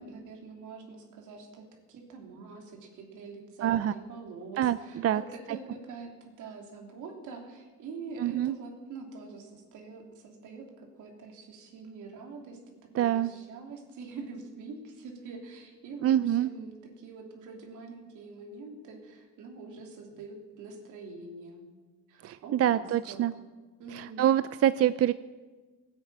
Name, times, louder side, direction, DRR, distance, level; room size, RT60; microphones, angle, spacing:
voice 1, 0.0-21.6 22.1-23.2 23.8-24.2, right 4 dB, 85° right, 2 dB, 3.1 m, -45 dB
voice 2, 3.6-3.9 4.6-4.8 5.0-5.2 8.2-8.5 12.9-13.3 16.0-16.5 22.2-23.3 23.9-25.1, right 11 dB, 50° right, 14 dB, 0.5 m, -25 dB
17.0 x 9.5 x 8.7 m, 1.3 s
cardioid pair, 90°, 30 cm